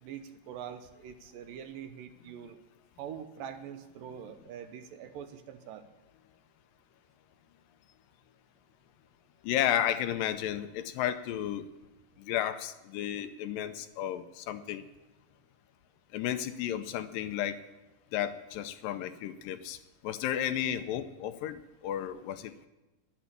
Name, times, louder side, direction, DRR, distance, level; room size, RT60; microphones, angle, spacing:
voice 1, 0.0-2.6 3.0-5.9, right 8 dB, 80° right, 9 dB, 2.3 m, -44 dB
voice 2, 9.4-11.7 12.2-14.8 16.1-17.6 18.1-19.8 20.0-22.7, left 11 dB, 80° left, 10 dB, 2.2 m, -33 dB
11.0 x 10.5 x 7.0 m, 1.0 s
omnidirectional pair, 4.2 m